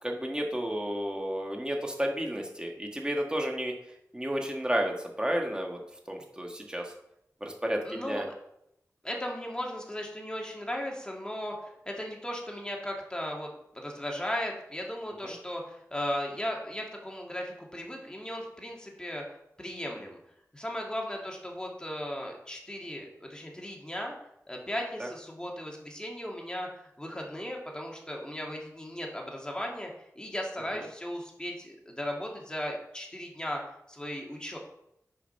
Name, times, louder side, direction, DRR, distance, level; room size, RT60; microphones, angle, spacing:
voice 1, 0.0-3.7 4.1-5.8 6.1-6.9 7.4-8.2 15.2-15.3 25.0-25.1 30.7-30.8, equal, 15° right, 1 dB, 1.5 m, -32 dB
voice 2, 7.8-8.3 9.0-20.2 20.5-24.1 24.5-33.6 33.9-34.6, equal, 15° left, 0 dB, 1.8 m, -36 dB
6.9 x 5.0 x 5.4 m, 0.80 s
wide cardioid pair, 60°, 6 cm